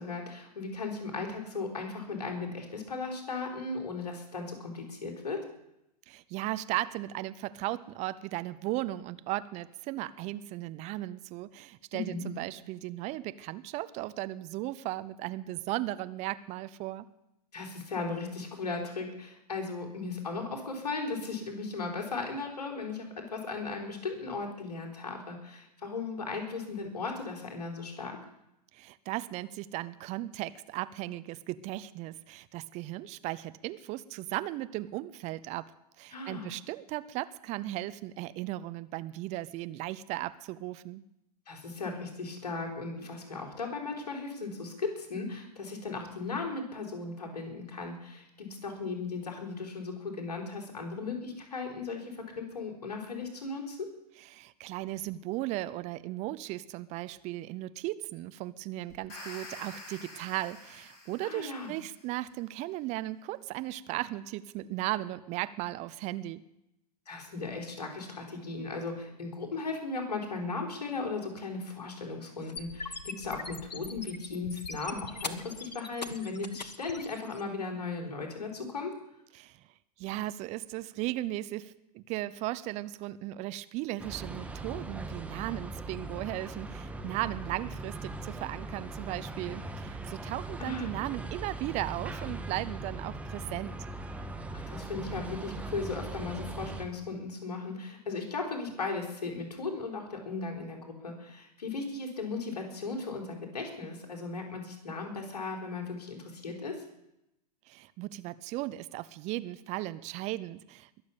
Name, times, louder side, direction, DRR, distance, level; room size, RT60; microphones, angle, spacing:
voice 1, 0.0-5.4 11.9-12.2 17.5-28.2 36.1-36.5 41.5-53.9 61.2-61.7 67.1-78.9 90.6-90.9 94.5-106.8, left 4 dB, 70° left, 2 dB, 4.4 m, -37 dB
voice 2, 6.1-17.0 28.7-41.0 54.2-66.4 79.3-79.6 80.0-93.8 107.7-111.0, right 16 dB, 35° right, 15 dB, 0.7 m, -36 dB
sound 1, 58.9-62.1, left 2 dB, 45° left, 7.9 m, -48 dB
sound 2, 72.4-77.4, left 4 dB, 90° left, 1.2 m, -41 dB
sound 3, 84.0-96.8, right 2 dB, 5° right, 1.4 m, -40 dB
21.5 x 7.3 x 8.4 m, 0.85 s
figure-of-eight pair, 105°, 21 cm